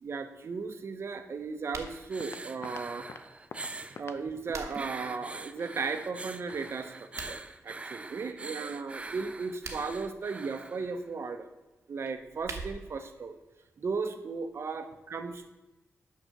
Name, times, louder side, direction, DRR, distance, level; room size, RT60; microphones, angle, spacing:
voice 1, 0.0-3.1 4.0-11.5 11.9-13.3 13.8-15.5, right 4 dB, 60° right, 7 dB, 0.8 m, -36 dB
sound 1, 1.6-2.0 4.0-5.0 7.0-7.4 9.4-10.0 12.0-13.0, right 4 dB, 75° right, 1.1 m, -43 dB
sound 2, 1.8-7.2, left 5 dB, 60° left, 0.6 m, -51 dB
sound 3, 1.9-4.0 4.7-11.0 12.1-12.2, right 3 dB, 25° right, 0.4 m, -43 dB
6.3 x 5.8 x 6.6 m, 1.1 s
wide cardioid pair, 100°, 5 cm